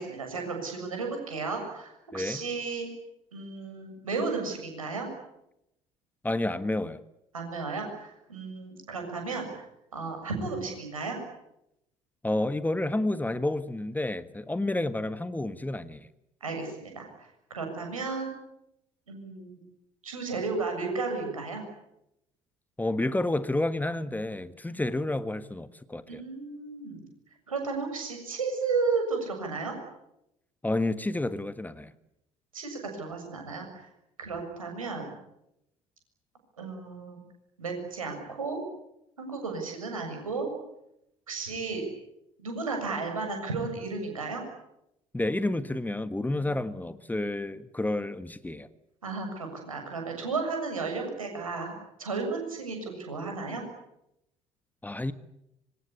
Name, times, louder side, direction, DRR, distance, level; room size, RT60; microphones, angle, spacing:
voice 1, 0.0-2.9 3.3-5.1 7.3-9.6 9.9-11.2 16.4-18.3 19.1-19.6 20.0-21.6 26.1-27.0 27.5-29.8 32.5-33.9 34.2-35.1 36.6-37.2 37.6-38.6 39.2-40.5 41.3-41.9 42.4-44.4 49.0-51.7 52.0-53.6, right 4 dB, 85° right, 7.1 m, -33 dB
voice 2, 2.1-2.4 6.2-7.0 12.2-16.1 22.8-26.2 30.6-31.9 45.1-48.7 54.8-55.1, left 2 dB, 10° left, 1.5 m, -30 dB
26.5 x 24.0 x 8.5 m
figure-of-eight pair, 60°, 17 cm